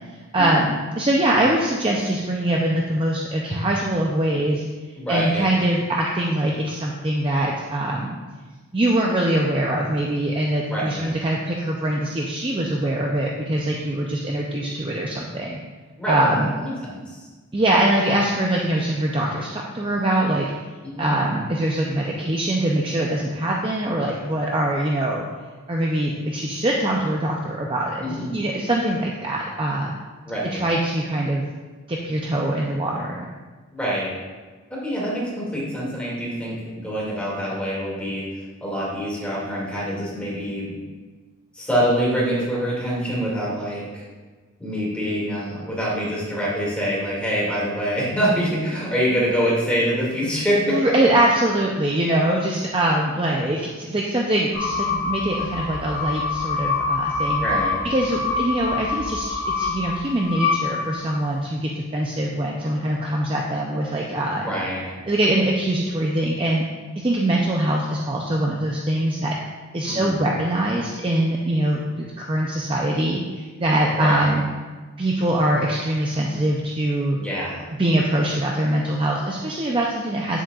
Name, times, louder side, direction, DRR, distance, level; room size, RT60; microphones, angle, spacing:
voice 1, 0.3-0.7 1.0-4.6 5.1-8.2 8.7-15.6 16.1-16.5 17.5-20.5 21.0-25.3 25.7-29.9 30.5-31.5 31.9-33.3 50.7-57.4 57.8-64.4 65.1-66.7 67.0-69.3 69.7-74.4 75.0-77.2 77.8-80.4, right 1 dB, 25° right, -2 dB, 0.5 m, -23 dB
voice 2, 5.0-5.5 10.7-11.1 16.0-16.3 16.6-17.3 20.8-21.1 28.0-28.3 30.3-30.6 33.7-34.2 34.7-40.8 41.5-44.1 44.6-50.8 57.4-57.8 64.4-65.0 69.9-70.3 73.9-74.4 77.2-77.7, equal, 5° left, -6 dB, 2.2 m, -25 dB
sound 1, 54.5-61.3, left 4 dB, 50° left, 2.4 m, -26 dB
9.1 x 7.6 x 2.4 m, 1.3 s
head